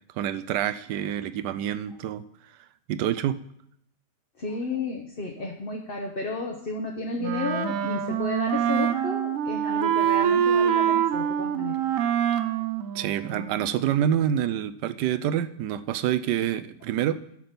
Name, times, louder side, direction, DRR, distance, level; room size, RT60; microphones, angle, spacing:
voice 1, 0.2-2.2 2.9-3.4 12.9-17.2, right 10 dB, 80° right, 13 dB, 1.2 m, -27 dB
voice 2, 4.4-11.8 12.0-12.1, left 3 dB, 40° left, 1 dB, 1.0 m, -32 dB
Wind instrument woodwind instrument, 7.2-13.8, right 9 dB, 65° right, 0.9 m, -25 dB
11.0 x 6.0 x 5.2 m, 0.71 s
omnidirectional pair, 1.8 m